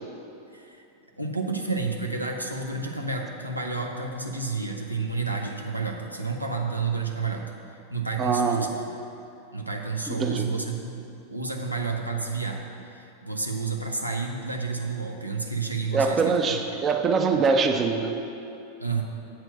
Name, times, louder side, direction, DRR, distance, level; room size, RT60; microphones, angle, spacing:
voice 1, 0.5-0.8 1.2-7.5 7.9-8.7 9.5-11.0 11.3-16.4 18.8-19.0, right 4 dB, 85° right, 1 dB, 0.7 m, -30 dB
voice 2, 8.2-8.7 10.1-10.5 15.9-18.1, right 4 dB, 25° right, 5 dB, 0.5 m, -23 dB
7.9 x 4.5 x 6.5 m, 2.8 s
figure-of-eight pair, 90°, 0 cm